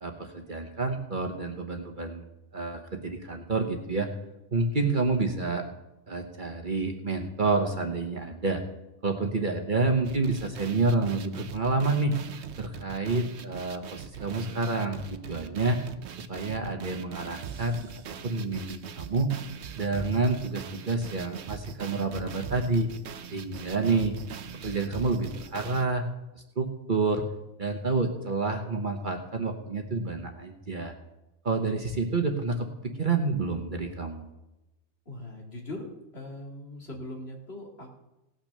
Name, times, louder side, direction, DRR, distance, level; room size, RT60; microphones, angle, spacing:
voice 1, 0.0-2.2 2.5-4.1 4.5-5.6 6.1-8.6 9.0-12.1 12.6-15.8 16.3-17.8 18.2-19.3 19.8-22.9 23.3-24.1 24.6-26.1 26.3-27.2 27.6-30.9 31.4-34.2, right 3 dB, 40° right, 4 dB, 1.2 m, -28 dB
sound 1, 10.0-25.9, right 8 dB, 65° right, 1.0 m, -41 dB
voice 2, 35.1-38.0, left 1 dB, 55° left, 0 dB, 2.6 m, -40 dB
17.5 x 6.0 x 6.6 m, 0.97 s
omnidirectional pair, 1.3 m